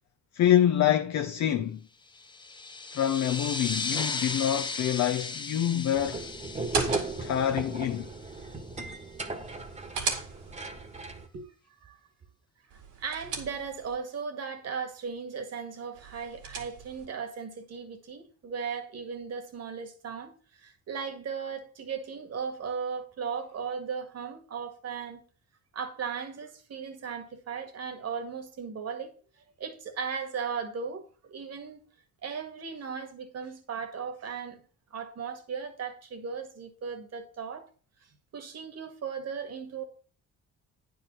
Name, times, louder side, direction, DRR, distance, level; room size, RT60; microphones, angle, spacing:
voice 1, 0.3-1.8 2.9-6.2 6.7-6.9 7.2-8.1, left 11 dB, 65° left, 0.7 m, -26 dB
sound 1, 2.1-8.4, left 4 dB, 15° left, 0.6 m, -36 dB
sound 2, 5.9-11.3, right 3 dB, 25° right, 1.4 m, -36 dB
sound 3, 6.5-7.5 9.4-10.7 12.7-14.0 15.9-17.1, right 5 dB, 85° right, 2.4 m, -36 dB
voice 2, 12.7-25.2 25.7-31.8 32.2-34.6 34.9-37.7 38.0-39.8, right 6 dB, 55° right, 1.9 m, -37 dB
9.5 x 4.8 x 6.2 m
cardioid pair, 90°, 30 cm